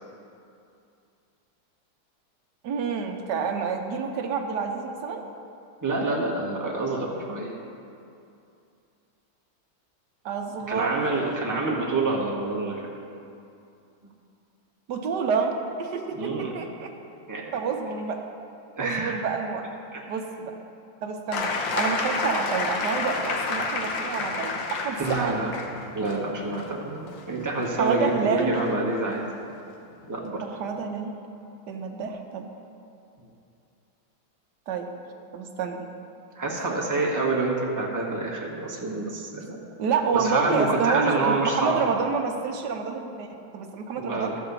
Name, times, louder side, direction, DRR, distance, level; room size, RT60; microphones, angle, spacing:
voice 1, 2.6-5.2 10.2-11.1 14.9-16.9 17.5-18.2 18.8-19.7 20.1-20.6 21.0-25.4 27.8-28.6 30.4-31.1 31.7-32.5 34.7-34.9 35.3-35.9 36.4-36.8 39.8-44.4, right 5 dB, 65° right, 3 dB, 1.3 m, -28 dB
voice 2, 5.8-7.6 10.7-12.8 16.1-16.5 17.3-17.4 18.8-19.2 19.9-20.0 25.0-25.5 25.9-29.3 30.1-30.4 36.3-39.6 40.1-41.8 44.0-44.4, right 2 dB, 10° right, -3 dB, 1.0 m, -27 dB
sound 1, 21.3-28.9 30.0-30.1, left 4 dB, 70° left, 1.6 m, -30 dB
13.0 x 4.9 x 6.9 m, 2.6 s
omnidirectional pair, 2.2 m